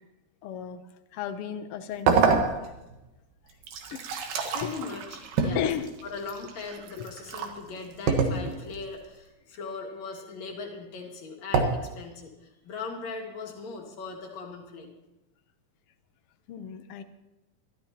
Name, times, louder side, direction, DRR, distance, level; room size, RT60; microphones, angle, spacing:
voice 1, 0.4-0.8 1.1-2.7 3.9-4.0 4.6-4.7 5.5-5.9 7.0-7.1 16.5-17.0, left 9 dB, 90° left, 8 dB, 1.2 m, -34 dB
sound 1, 2.1-3.0 3.5-7.5 8.1-8.8 11.5-11.6, right 5 dB, 90° right, 3.0 m, -27 dB
voice 2, 4.5-5.7 6.0-14.9, left 4 dB, 60° left, 1 dB, 3.0 m, -39 dB
23.0 x 13.0 x 2.9 m, 0.99 s
omnidirectional pair, 3.7 m